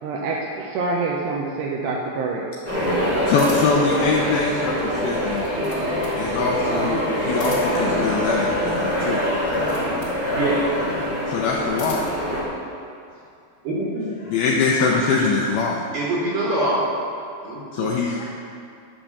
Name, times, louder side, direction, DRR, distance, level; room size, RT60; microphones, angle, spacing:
voice 1, 0.0-2.5, right 3 dB, 80° right, -1 dB, 2.7 m, -26 dB
sound 1, 2.6-12.4, equal, 15° right, 0.6 m, -24 dB
voice 2, 3.3-5.5 6.2-9.7 11.3-12.1 14.3-15.9 17.7-18.3, left 4 dB, 80° left, -2 dB, 2.2 m, -23 dB
sound 2, 3.4-3.9 5.2-6.2 7.3-7.9 9.4-10.2 11.4-12.2, left 2 dB, 30° left, 2.8 m, -39 dB
voice 3, 10.3-10.7 13.6-14.1 15.9-16.8 17.4-17.9, right 1 dB, 60° right, -7 dB, 3.0 m, -24 dB
11.0 x 6.0 x 6.7 m, 2.6 s
omnidirectional pair, 5.2 m